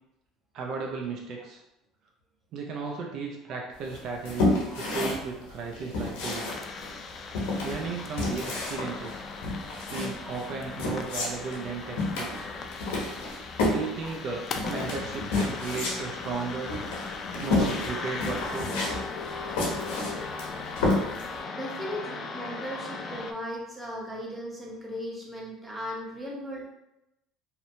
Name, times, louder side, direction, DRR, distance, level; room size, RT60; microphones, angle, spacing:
voice 1, 0.5-1.6 2.5-6.5 7.6-9.2 9.9-12.5 13.6-16.7 17.3-18.8, right 4 dB, 60° right, 0 dB, 0.4 m, -35 dB
sound 1, 3.9-21.4, left 2 dB, 85° left, 0.7 m, -30 dB
sound 2, 6.2-23.3, left 4 dB, 40° left, 0.3 m, -38 dB
voice 2, 7.6-8.1 8.6-8.7 10.2-10.4 14.0-14.1 16.0-16.2 21.5-26.7, equal, 10° right, -3 dB, 0.8 m, -38 dB
2.7 x 2.1 x 2.6 m, 0.88 s
supercardioid pair, 95°, 0 cm